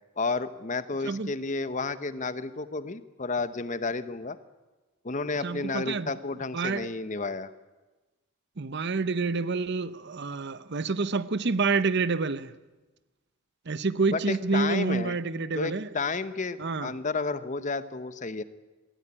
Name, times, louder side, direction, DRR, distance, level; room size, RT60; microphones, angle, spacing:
voice 1, 0.2-4.4 5.0-7.5 14.1-15.2 15.5-18.4, left 3 dB, 35° left, 0.9 m, -31 dB
voice 2, 5.4-6.1 6.5-6.9 8.6-12.5 13.7-15.9 16.6-16.9, right 4 dB, 50° right, 0.8 m, -28 dB
21.5 x 15.0 x 9.9 m
head